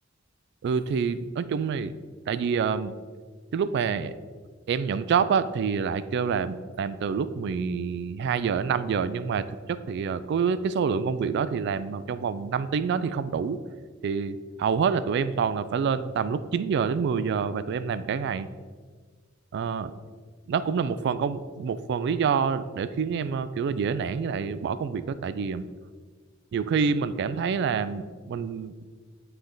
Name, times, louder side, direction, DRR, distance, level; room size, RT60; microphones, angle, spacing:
voice 1, 0.6-1.9 2.3-2.9 3.5-4.1 4.7-13.6 14.0-18.5 19.5-19.9 20.5-25.7 26.5-28.8, right 6 dB, 55° right, 14 dB, 0.3 m, -27 dB
9.4 x 3.3 x 3.8 m, 1.5 s
head